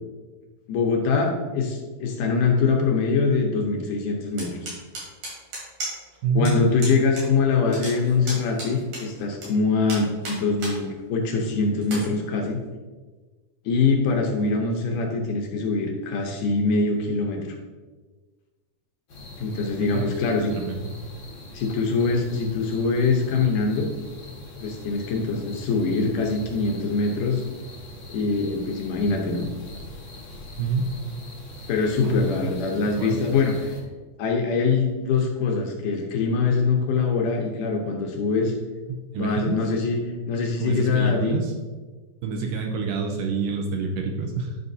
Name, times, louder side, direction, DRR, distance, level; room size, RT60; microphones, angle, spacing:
voice 1, 0.7-4.7 6.4-12.6 13.7-17.4 19.4-20.5 21.5-23.9 24.6-27.4 28.1-29.5 31.7-33.7 34.2-38.5 39.2-40.0 40.3-41.3, left 4 dB, 75° left, 1 dB, 2.2 m, -23 dB
sound 1, 4.4-6.2 6.5-6.6 6.8-7.3 7.5-9.5 9.9-10.8 11.2-11.3 11.8-12.0, right 2 dB, 55° right, 3.8 m, -34 dB
voice 2, 6.2-6.7 19.8-20.1 20.6-20.9 30.6-30.9 32.0-32.5 33.0-33.2 38.9-39.6 40.6-41.5 42.2-44.6, right 4 dB, 80° right, 3 dB, 2.1 m, -27 dB
sound 2, 19.1-33.8, left 2 dB, 50° left, 1.5 m, -42 dB
10.0 x 5.7 x 2.7 m, 1.3 s
omnidirectional pair, 4.2 m